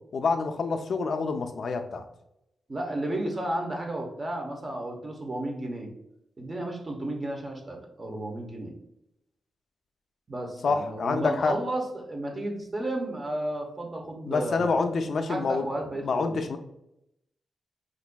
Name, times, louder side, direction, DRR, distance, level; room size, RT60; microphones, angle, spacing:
voice 1, 0.1-2.0 10.6-11.5 14.3-15.7 16.0-16.6, left 4 dB, 60° left, 7 dB, 0.4 m, -27 dB
voice 2, 2.7-5.9 6.4-8.7 10.3-14.7 15.3-16.4, right 1 dB, 30° right, 1 dB, 0.8 m, -33 dB
5.1 x 2.5 x 2.2 m, 0.81 s
wide cardioid pair, 110°, 0 cm